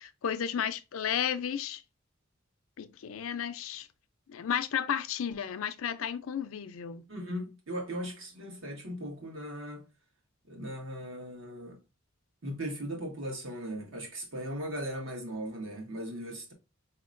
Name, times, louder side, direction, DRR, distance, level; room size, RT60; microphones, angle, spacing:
voice 1, 0.0-1.8 2.8-3.9 4.3-7.0, left 8 dB, 85° left, 0.4 m, -33 dB
voice 2, 7.1-9.8 10.5-11.8 12.4-16.5, equal, 75° right, 1.3 m, -38 dB
4.3 x 2.8 x 2.5 m
head